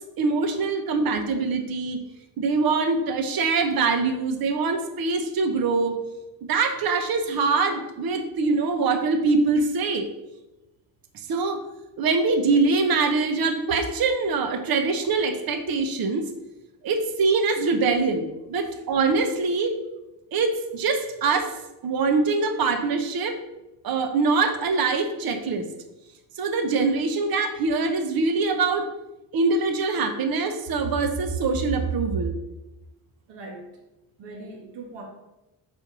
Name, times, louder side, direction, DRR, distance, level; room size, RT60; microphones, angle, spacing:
voice 1, 0.2-2.0 2.4-6.0 6.5-10.1 11.3-11.6 12.0-16.3 16.8-19.8 20.3-21.5 21.8-23.4 23.8-25.7 26.4-28.9 29.3-32.3, right 4 dB, 50° right, 6 dB, 0.9 m, -23 dB
voice 2, 33.3-33.7 34.2-35.0, right 2 dB, 65° right, 0 dB, 1.6 m, -40 dB
5.2 x 4.4 x 5.9 m, 0.98 s
cardioid pair, 95°, 46 cm